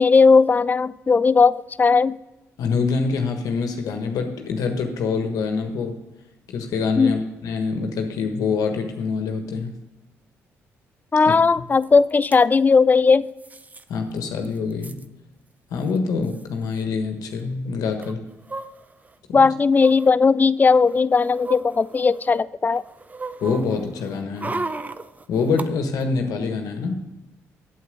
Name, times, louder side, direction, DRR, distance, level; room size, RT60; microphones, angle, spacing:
voice 1, 0.0-2.2 7.0-7.2 11.1-13.3 19.3-22.8, left 4 dB, 30° left, 18 dB, 0.4 m, -17 dB
voice 2, 2.6-5.9 6.5-9.7 11.3-11.6 13.9-15.0 15.7-18.2 19.3-19.5 23.4-24.5 25.3-27.0, left 4 dB, 70° left, 5 dB, 1.4 m, -25 dB
sound 1, 11.8-11.9 12.1-12.4 13.4-13.8 14.2-14.3 14.4-15.0 15.9-16.0 16.2-16.4 18.0-19.1 19.7-20.1 20.7-22.4 22.7-25.7 26.0-26.1, right 3 dB, 25° right, 0.6 m, -35 dB
8.4 x 8.4 x 5.2 m, 1.0 s
supercardioid pair, 55°, 6 cm